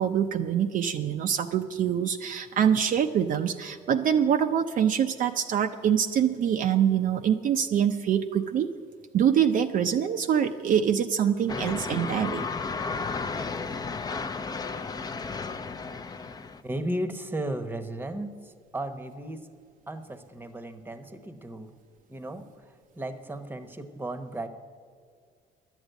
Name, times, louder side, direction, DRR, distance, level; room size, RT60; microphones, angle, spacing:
voice 1, 0.0-8.7 9.1-12.4, right 8 dB, 55° right, 6 dB, 0.6 m, -25 dB
sound 1, 11.5-16.6, left 4 dB, 25° left, 0.6 m, -33 dB
voice 2, 16.6-19.5 19.9-21.7 22.1-24.5, right 1 dB, 10° right, 10 dB, 1.0 m, -35 dB
10.5 x 8.1 x 9.2 m, 2.1 s
cardioid pair, 110°, 17 cm